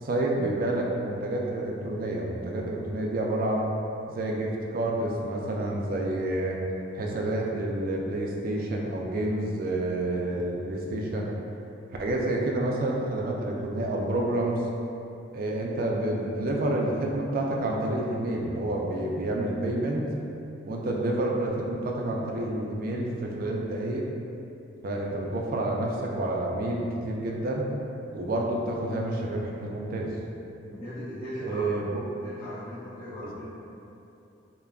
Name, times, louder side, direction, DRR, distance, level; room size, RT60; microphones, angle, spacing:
voice 1, 0.0-3.7 4.1-6.6 6.9-11.3 12.0-14.6 15.3-20.1 20.6-24.1 24.8-27.7 28.1-30.1 31.4-32.0 33.2-33.5, right 1 dB, 50° right, -1 dB, 0.3 m, -29 dB
voice 2, 30.7-31.7 32.2-33.5, equal, 30° left, -13 dB, 0.5 m, -38 dB
3.4 x 2.1 x 2.3 m, 2.8 s
head